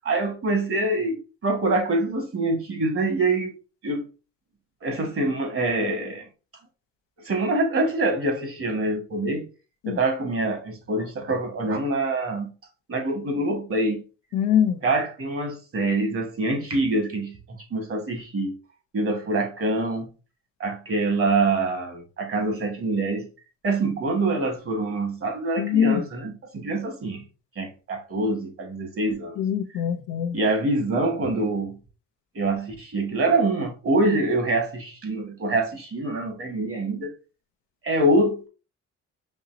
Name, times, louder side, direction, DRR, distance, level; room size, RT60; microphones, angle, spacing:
voice 1, 0.0-3.5 3.8-4.1 4.8-6.3 7.2-9.5 9.8-12.5 12.9-14.0 14.8-18.6 18.9-20.1 20.6-23.3 23.6-27.2 27.5-29.4 30.3-31.8 32.3-37.1 37.8-38.5, right 2 dB, 50° right, 1.5 m, -25 dB
voice 2, 14.3-14.8 25.6-26.0 29.4-30.4, left 9 dB, 90° left, 0.6 m, -23 dB
5.2 x 2.8 x 2.6 m
cardioid pair, 90°, 30 cm